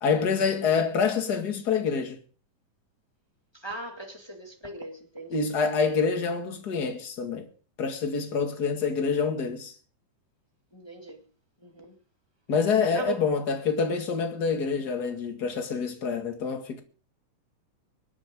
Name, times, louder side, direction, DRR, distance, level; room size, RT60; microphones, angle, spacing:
voice 1, 0.0-2.2 5.3-7.5 7.8-9.7 12.5-16.8, left 5 dB, 35° left, 2.0 m, -26 dB
voice 2, 3.5-5.7 10.7-11.2 11.6-11.9 12.9-13.2, right 3 dB, 15° left, 0.9 m, -38 dB
25.5 x 9.8 x 3.7 m
omnidirectional pair, 3.9 m